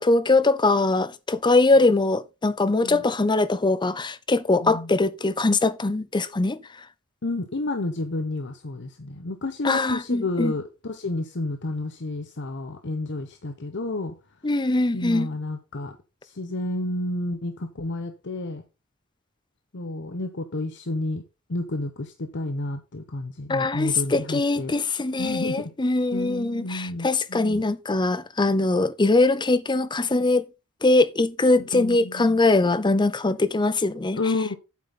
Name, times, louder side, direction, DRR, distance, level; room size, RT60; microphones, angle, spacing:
voice 1, 0.0-6.6 9.6-10.5 14.4-15.3 23.5-30.5 30.8-34.2, left 2 dB, 20° left, 0.6 m, -22 dB
voice 2, 4.6-4.9 7.2-14.1 14.9-16.0 16.2-18.6 19.7-21.2 21.5-24.7 25.2-25.7 26.1-27.6 31.7-32.4 34.1-34.6, left 2 dB, 55° left, 0.9 m, -30 dB
8.5 x 7.8 x 4.2 m
head